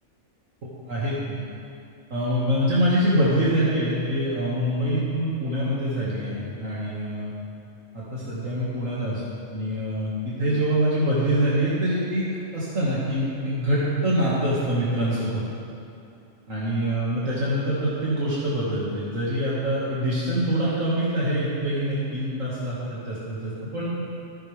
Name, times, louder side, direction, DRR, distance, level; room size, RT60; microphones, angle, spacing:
voice 1, 0.6-1.4 2.1-7.3 7.9-9.2 9.5-12.3 12.5-15.4 16.5-23.9, equal, 70° right, -8 dB, 2.5 m, -25 dB
15.0 x 15.0 x 3.6 m, 2.7 s
omnidirectional pair, 1.4 m